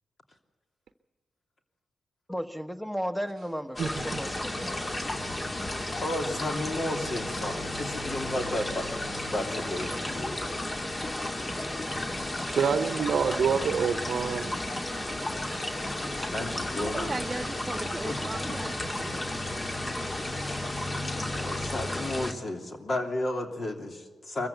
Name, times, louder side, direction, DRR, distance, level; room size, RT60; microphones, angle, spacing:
voice 1, 2.3-4.7, equal, 5° left, 9 dB, 1.4 m, -34 dB
sound 1, 3.8-22.3, left 1 dB, 35° left, 2.3 m, -33 dB
voice 2, 3.8-4.2 12.4-14.9, right 6 dB, 70° right, 9 dB, 0.8 m, -27 dB
voice 3, 6.0-8.9 9.2-10.4 16.2-17.2 18.0-18.1 19.2-19.3 21.4-24.5, left 1 dB, 55° left, 3 dB, 3.0 m, -33 dB
voice 4, 16.8-19.4, right 2 dB, 25° right, 3 dB, 0.8 m, -37 dB
23.5 x 14.5 x 8.1 m, 1.5 s
supercardioid pair, 45°, 0 cm